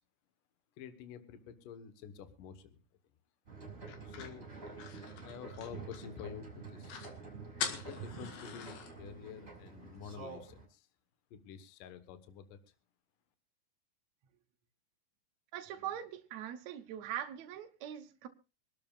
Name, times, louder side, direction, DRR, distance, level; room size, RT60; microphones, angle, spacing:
voice 1, 0.8-2.8 4.1-4.5 5.2-7.1 7.6-10.9 11.3-12.6, left 8 dB, 65° left, 2.5 m, -49 dB
sound 1, 3.5-10.7, right 4 dB, 20° right, 6.2 m, -48 dB
sound 2, 3.9-6.3 6.6-6.7 6.9-7.1 7.6-8.9, left 6 dB, 85° left, 3.9 m, -43 dB
voice 2, 15.5-18.3, right 10 dB, 70° right, 1.7 m, -42 dB
25.5 x 12.5 x 2.4 m
omnidirectional pair, 4.5 m